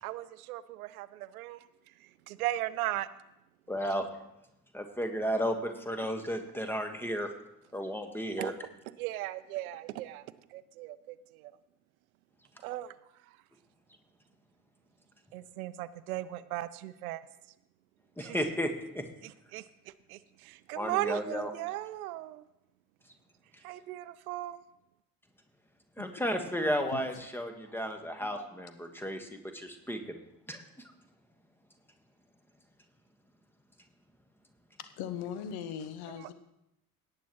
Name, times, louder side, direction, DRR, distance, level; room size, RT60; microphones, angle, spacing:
voice 1, 0.0-3.1 8.4-8.5 8.9-11.5 12.6-12.9 13.2-13.4 15.3-17.3 18.2-18.4 19.2-22.4 23.6-24.6 36.2-36.3, right 15 dB, 65° right, 16 dB, 0.6 m, -38 dB
voice 2, 3.7-4.1 4.7-7.3 7.7-8.5 18.2-19.0 20.8-21.5 26.0-30.2 30.5-30.6, equal, 5° left, 6 dB, 1.4 m, -33 dB
voice 3, 26.7-27.2 34.8-36.3, left 8 dB, 55° left, 10 dB, 1.0 m, -40 dB
18.0 x 8.7 x 3.0 m, 0.87 s
figure-of-eight pair, 55°, 46 cm